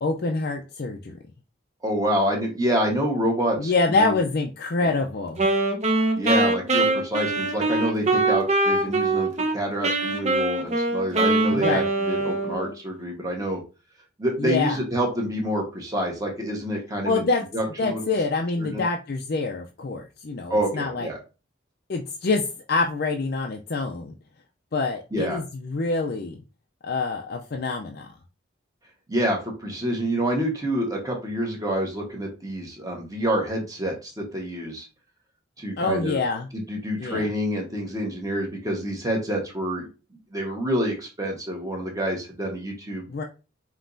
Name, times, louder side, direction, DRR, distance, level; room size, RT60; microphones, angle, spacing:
voice 1, 0.0-1.1 3.6-5.5 11.5-11.9 14.4-14.8 17.0-17.4 17.8-21.1 21.9-24.1 24.7-26.4 26.8-28.1 35.8-36.5 37.0-37.3 43.1-43.2, left 3 dB, 50° left, 2 dB, 0.5 m, -26 dB
voice 2, 1.8-3.7 4.0-4.2 6.1-13.6 14.2-17.2 17.5-18.0 18.6-18.8 20.5-21.2 25.1-25.4 29.1-34.9 35.6-36.2 36.5-39.9 40.3-43.1, equal, 20° right, 0 dB, 1.2 m, -27 dB
Wind instrument woodwind instrument, 5.4-9.5 9.8-12.7, right 2 dB, 35° right, 0.7 m, -23 dB
5.4 x 3.0 x 2.6 m, 0.31 s
head